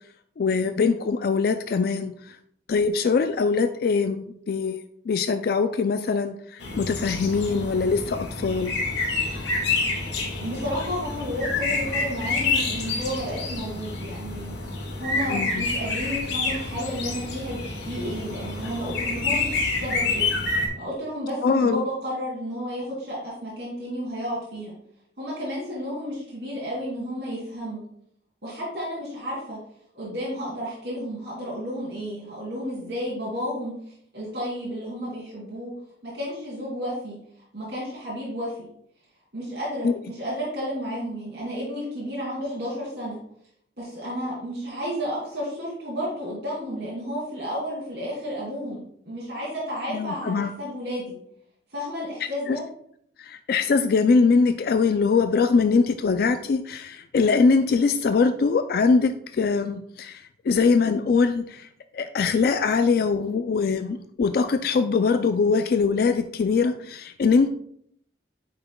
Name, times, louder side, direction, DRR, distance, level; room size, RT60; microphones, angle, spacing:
voice 1, 0.4-2.4 2.7-8.7 15.3-15.7 21.4-21.9 39.8-39.9 49.9-50.5 52.5-52.6 53.2-61.7 61.9-67.5, left 4 dB, 55° left, 9 dB, 0.3 m, -22 dB
sound 1, 6.6-20.7, left 3 dB, 80° left, 1.6 m, -28 dB
voice 2, 10.4-14.5 15.0-20.3 20.8-24.7 25.2-27.8 28.4-29.6 29.9-33.7 34.1-35.7 36.0-37.2 37.5-38.7 39.3-43.2 43.8-51.2 51.7-52.6, equal, 70° right, -8 dB, 2.6 m, -32 dB
9.2 x 5.7 x 2.3 m, 0.67 s
head